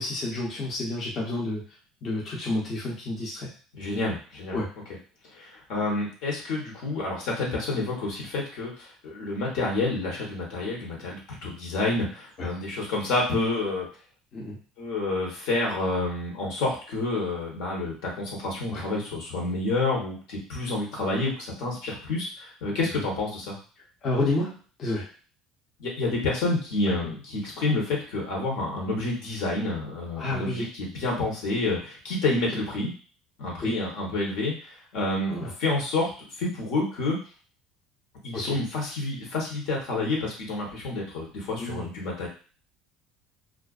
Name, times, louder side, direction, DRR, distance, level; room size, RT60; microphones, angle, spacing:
voice 1, 0.0-1.6 2.0-3.5 4.5-4.7 12.4-12.5 14.3-14.6 18.7-18.8 24.0-25.1 30.2-30.7 33.6-33.7 35.3-35.5 38.3-38.6 41.6-41.8, left 2 dB, 40° left, -4 dB, 0.7 m, -30 dB
voice 2, 3.7-4.6 5.3-13.9 14.8-23.6 25.8-32.9 33.4-36.1 36.4-37.2 38.2-42.3, left 2 dB, 75° left, -2 dB, 1.0 m, -29 dB
2.4 x 2.2 x 2.4 m, 0.38 s
cardioid pair, 125°, 0 cm